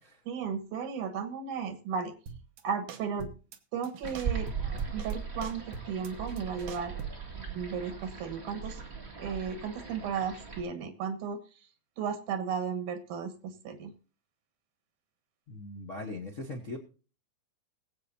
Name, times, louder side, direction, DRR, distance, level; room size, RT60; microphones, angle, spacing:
voice 1, 0.3-2.1 2.6-3.3 3.7-6.9 7.3-8.8 9.2-11.4 12.0-13.9, right 6 dB, 85° right, 7 dB, 2.8 m, -35 dB
sound 1, 2.3-2.6 2.9-3.6 3.8-5.1 5.4-7.3, right 6 dB, 65° right, 1.9 m, -44 dB
sound 2, 4.0-10.6, right 6 dB, 25° right, 2.0 m, -38 dB
voice 2, 15.5-16.8, left 2 dB, 65° left, 3 dB, 0.7 m, -40 dB
21.5 x 8.0 x 2.7 m, 0.37 s
omnidirectional pair, 3.5 m